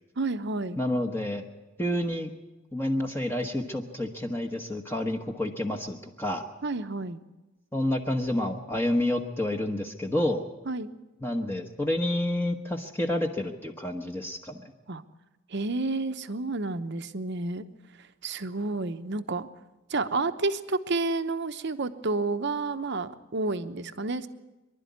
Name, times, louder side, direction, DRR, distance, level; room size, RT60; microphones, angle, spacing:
voice 1, 0.2-0.8 6.6-7.2 10.7-10.9 14.9-15.0 15.5-17.6 18.2-19.5 19.9-24.3, right 3 dB, 55° right, 10 dB, 0.9 m, -30 dB
voice 2, 0.8-1.4 1.8-2.3 2.7-6.5 7.7-10.5 11.2-14.6, left 1 dB, 10° left, 3 dB, 1.1 m, -29 dB
24.0 x 12.0 x 9.5 m, 1.1 s
head